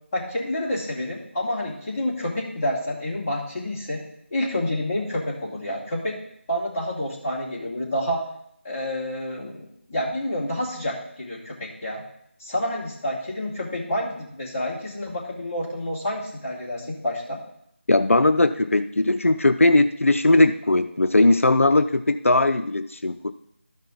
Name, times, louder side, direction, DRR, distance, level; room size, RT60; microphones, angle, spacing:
voice 1, 0.1-4.0 4.3-6.2 6.5-8.3 8.6-12.0 12.4-17.4, left 1 dB, 20° left, -8 dB, 2.3 m, -28 dB
voice 2, 17.9-23.3, left 2 dB, 85° left, 10 dB, 0.5 m, -19 dB
13.0 x 5.5 x 3.9 m, 0.73 s
figure-of-eight pair, 165°, 7 cm